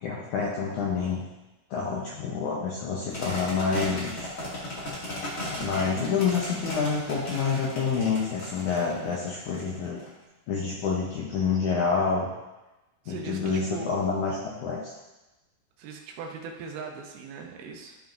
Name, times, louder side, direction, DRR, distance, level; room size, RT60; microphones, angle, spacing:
voice 1, 0.0-1.3 1.7-4.3 5.5-10.0 10.5-12.3 13.1-14.9, left 5 dB, 75° left, -4 dB, 1.8 m, -28 dB
sound 1, 3.1-10.1, left 1 dB, 35° left, 1.3 m, -36 dB
voice 2, 13.1-14.1 15.8-18.0, right 4 dB, 80° right, 2 dB, 2.7 m, -39 dB
13.0 x 5.6 x 2.6 m, 1.0 s
omnidirectional pair, 4.6 m